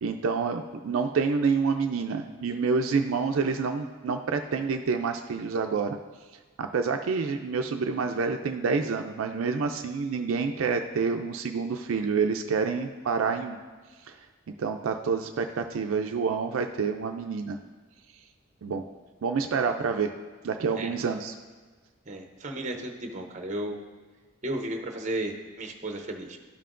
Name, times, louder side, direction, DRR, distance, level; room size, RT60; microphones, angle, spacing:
voice 1, 0.0-6.0 6.6-13.6 14.1-14.2 14.5-17.6 18.6-18.8 19.2-20.1 20.4-21.3, right 5 dB, 75° right, 5 dB, 0.4 m, -28 dB
voice 2, 22.1-23.8 24.4-26.4, right 1 dB, 35° right, 3 dB, 0.7 m, -34 dB
13.0 x 5.6 x 2.5 m, 1.4 s
head